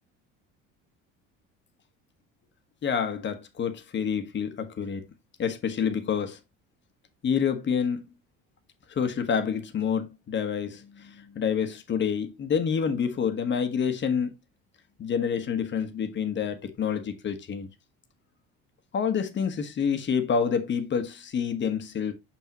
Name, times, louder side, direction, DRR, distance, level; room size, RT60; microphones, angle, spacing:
voice 1, 2.8-5.0 5.4-6.4 7.2-8.0 9.0-14.3 15.0-17.7 18.9-22.1, left 7 dB, 40° left, 1.3 m, -28 dB
6.1 x 6.0 x 2.9 m
supercardioid pair, 100°, 30 cm